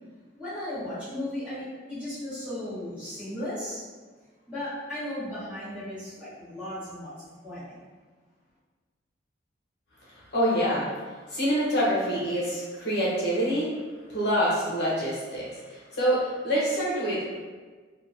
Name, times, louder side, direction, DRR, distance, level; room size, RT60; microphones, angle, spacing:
voice 1, 0.3-3.8 4.5-7.8, left 1 dB, 5° right, -14 dB, 1.2 m, -36 dB
voice 2, 10.1-10.9 11.3-13.7 14.1-17.4, equal, 55° left, -7 dB, 0.7 m, -26 dB
2.8 x 2.2 x 2.6 m, 1.4 s
head